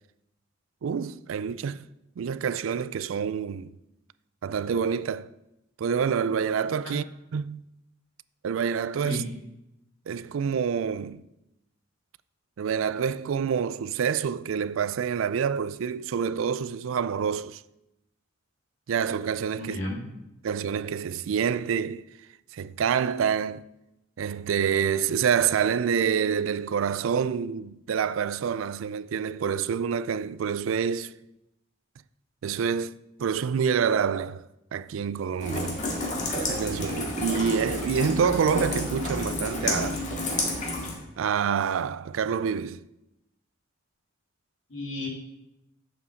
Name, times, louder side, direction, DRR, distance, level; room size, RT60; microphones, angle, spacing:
voice 1, 0.8-1.9 2.2-3.7 4.4-5.3 5.8-7.0 7.3-7.6 8.4-9.2 10.1-11.2 12.6-17.6 18.9-19.8 20.4-22.0 22.5-23.7 24.2-31.1 32.4-34.4 34.7-35.8 36.4-40.0 41.2-42.8, right 7 dB, 80° right, 0.4 m, -27 dB
voice 2, 19.6-20.1 44.7-45.1, left 1 dB, 80° left, 2.2 m, -33 dB
Rain, 35.4-41.0, left 2 dB, 40° left, 1.9 m, -30 dB
7.2 x 5.7 x 7.6 m
head